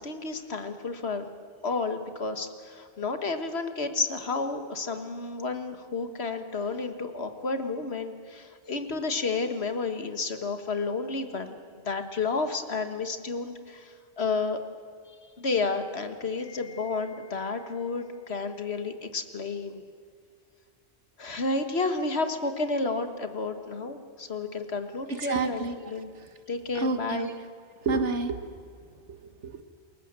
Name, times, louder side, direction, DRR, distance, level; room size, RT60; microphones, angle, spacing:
voice 1, 0.0-1.3 1.6-11.6 11.8-14.6 15.4-19.8 21.2-26.1 26.5-27.3, left 3 dB, 65° left, 8 dB, 1.9 m, -31 dB
voice 2, 25.1-25.7 26.8-27.3 27.8-28.4 29.1-29.6, right 3 dB, 85° right, 9 dB, 1.8 m, -29 dB
28.5 x 21.5 x 7.5 m, 2.2 s
omnidirectional pair, 1.2 m